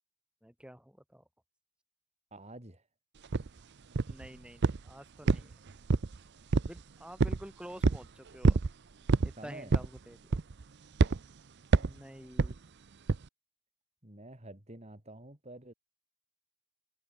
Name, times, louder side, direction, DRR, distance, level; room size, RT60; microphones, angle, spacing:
voice 1, 0.4-1.2 4.1-5.5 6.6-8.6 9.2-10.2 11.7-12.6, equal, 5° right, 5.7 m, -49 dB
voice 2, 2.3-2.9 5.3-5.4 9.4-9.8 14.0-15.7, right 1 dB, 30° right, 3.1 m, -49 dB
sound 1, 3.3-3.5 4.0-4.3 4.6-4.9 5.3-6.2 6.5-6.8 7.2-7.4 7.8-8.1 8.4-8.7 9.1-9.3 9.7-10.0 10.3-10.6 11.0-11.2 11.7-12.0 12.4-12.6 13.1-13.3, right 3 dB, 50° right, 0.6 m, -26 dB
head